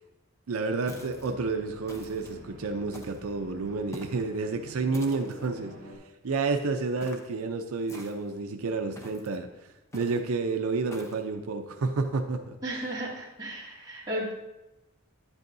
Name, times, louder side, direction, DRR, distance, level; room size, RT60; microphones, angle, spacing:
voice 1, 0.5-5.7 6.2-12.6, right 3 dB, 80° right, 6 dB, 0.5 m, -30 dB
sound 1, 0.9-1.3 1.9-2.4 2.9-3.3 3.9-4.3 4.9-5.5 7.0-7.3 7.9-8.4 9.0-9.4 9.9-10.3 10.9-11.3, equal, 15° left, 0.6 m, -46 dB
sound 2, 0.9-6.0, right 1 dB, 55° right, 2.0 m, -47 dB
voice 2, 12.6-14.3, right 1 dB, 20° right, -6 dB, 2.1 m, -34 dB
9.9 x 8.1 x 2.6 m, 1.0 s
head